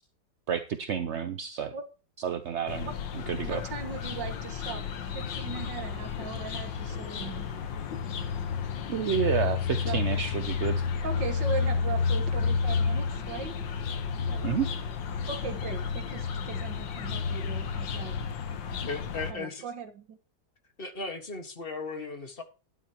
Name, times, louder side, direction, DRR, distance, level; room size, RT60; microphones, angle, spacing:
voice 1, 0.5-1.7 2.2-2.9 3.3-3.6 8.9-10.8 14.4-14.7, right 8 dB, 55° right, 10 dB, 0.8 m, -30 dB
sound 1, 2.7-19.3, left 6 dB, 80° left, 1.9 m, -31 dB
voice 2, 3.4-7.5 9.8-10.2 11.0-13.5 14.3-14.6 15.3-18.2 19.3-20.2, right 5 dB, 80° right, 8 dB, 2.1 m, -39 dB
voice 3, 18.8-19.7 20.8-22.4, left 3 dB, 30° left, 6 dB, 1.7 m, -36 dB
12.5 x 10.5 x 3.0 m, 0.34 s
omnidirectional pair, 2.0 m